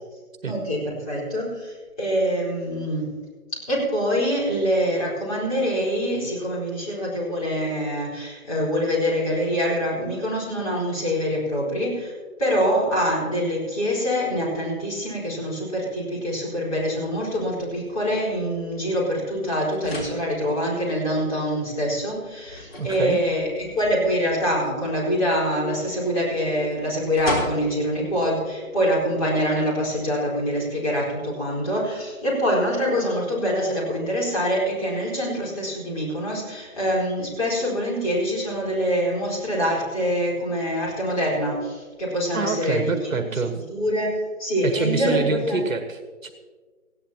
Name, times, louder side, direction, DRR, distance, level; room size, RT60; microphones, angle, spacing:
voice 1, 0.5-3.2 3.7-12.1 12.4-43.1 43.5-45.6, equal, 25° left, -6 dB, 4.4 m, -25 dB
sound 1, 17.0-30.0, left 1 dB, 40° left, 3.6 m, -39 dB
voice 2, 22.8-23.2 42.3-43.5 44.6-46.3, right 4 dB, 60° right, 7 dB, 1.4 m, -26 dB
19.0 x 16.0 x 2.9 m, 1.4 s
hypercardioid pair, 175°, 44 cm